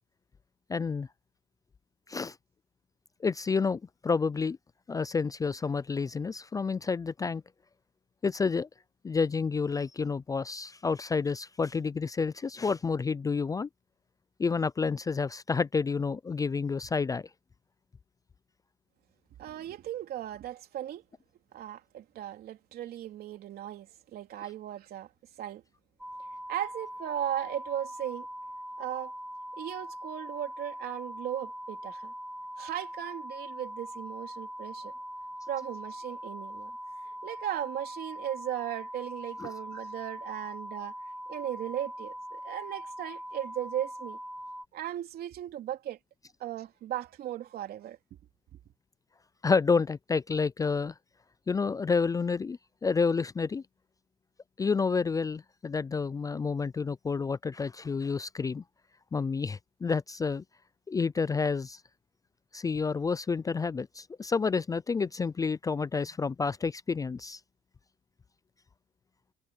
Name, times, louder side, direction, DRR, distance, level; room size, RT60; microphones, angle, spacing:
voice 1, 0.7-1.1 2.1-2.3 3.2-4.6 4.9-7.4 8.2-8.7 9.0-13.7 14.4-17.2 39.4-39.5 49.4-50.9 51.5-53.6 54.6-58.6 59.1-60.4 60.9-61.8 62.5-67.4, left 5 dB, 20° left, 0.4 m, -29 dB
voice 2, 19.4-21.0 21.5-25.1 25.4-25.6 26.5-28.3 28.8-29.1 29.6-32.1 32.6-34.9 35.5-36.7 37.2-40.9 41.3-44.2 44.7-46.0 46.4-48.0, right 11 dB, 65° right, 3.1 m, -37 dB
sound 1, 26.0-44.7, equal, 5° right, 2.3 m, -42 dB
cardioid pair, 110°, 17 cm